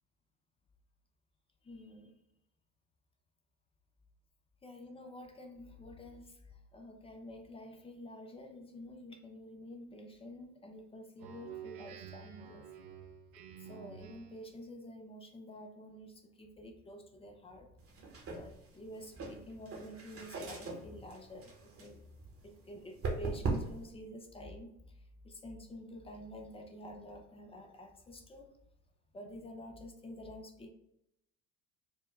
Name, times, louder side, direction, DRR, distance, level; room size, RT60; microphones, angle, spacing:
voice 1, 1.6-2.2 4.6-12.7 13.4-17.7 18.3-22.0 22.4-28.5 29.1-30.7, equal, 15° left, 4 dB, 0.5 m, -49 dB
Speech synthesizer, 11.2-14.5, right 9 dB, 65° right, 0.8 m, -50 dB
sound 1, 17.8-23.9, right 3 dB, 30° right, 1.0 m, -41 dB
4.6 x 2.1 x 3.1 m, 0.82 s
hypercardioid pair, 70°, 45 cm